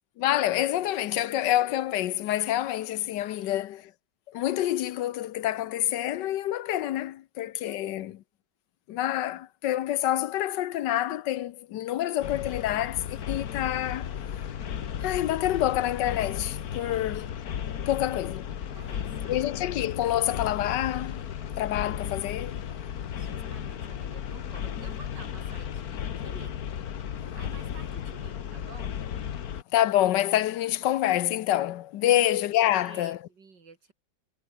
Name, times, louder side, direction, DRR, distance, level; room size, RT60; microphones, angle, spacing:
voice 1, 0.2-3.9 4.3-8.2 8.9-14.1 15.0-17.3 17.9-18.5 19.3-21.2 21.6-22.7 29.7-33.2, left 13 dB, 80° left, 1.4 m, -27 dB
voice 2, 3.3-3.6 7.6-8.1 16.8-17.0 18.7-19.5 22.7-26.6 27.3-29.0 32.0-32.2 32.7-33.9, right 4 dB, 75° right, 3.3 m, -51 dB
sound 1, 12.2-29.6, left 9 dB, 60° left, 1.6 m, -35 dB
omnidirectional pair, 1.9 m